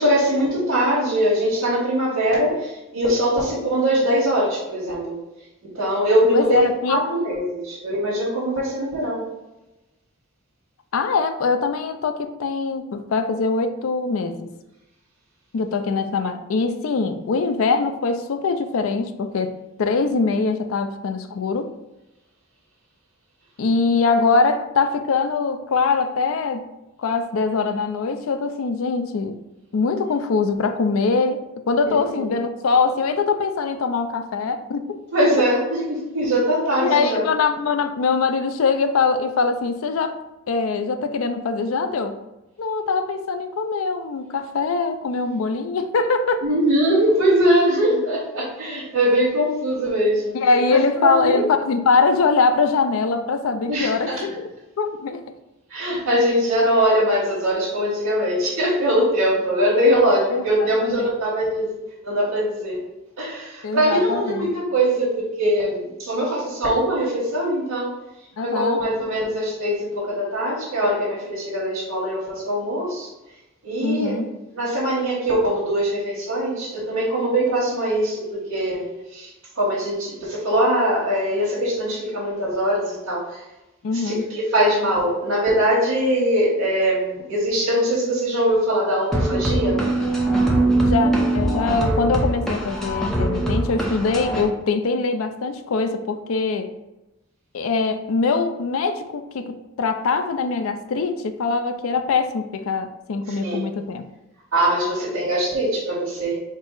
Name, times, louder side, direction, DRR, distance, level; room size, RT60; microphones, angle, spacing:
voice 1, 0.0-5.2 5.6-6.6 6.9-9.3 32.1-32.3 35.1-37.3 46.4-50.4 51.0-51.4 53.7-54.2 55.7-61.8 62.0-62.8 63.2-67.9 68.4-73.1 73.6-74.1 74.5-78.9 79.1-79.3 79.6-83.4 83.9-89.8 103.3-103.6 104.5-106.4, equal, 85° right, -9 dB, 1.3 m, -22 dB
voice 2, 6.3-7.0 10.9-14.5 15.5-19.5 19.8-21.7 23.6-26.6 27.0-29.4 29.7-34.9 36.8-40.2 40.5-42.1 42.6-46.4 49.5-49.6 50.3-54.5 54.8-55.2 60.3-61.1 63.6-64.5 68.4-68.8 73.8-74.3 83.8-84.3 90.8-96.7 97.5-104.0, left 4 dB, 80° left, 8 dB, 0.4 m, -22 dB
sound 1, 89.1-94.4, right 1 dB, ahead, 0.6 m, -22 dB
4.4 x 2.0 x 4.6 m, 0.99 s
head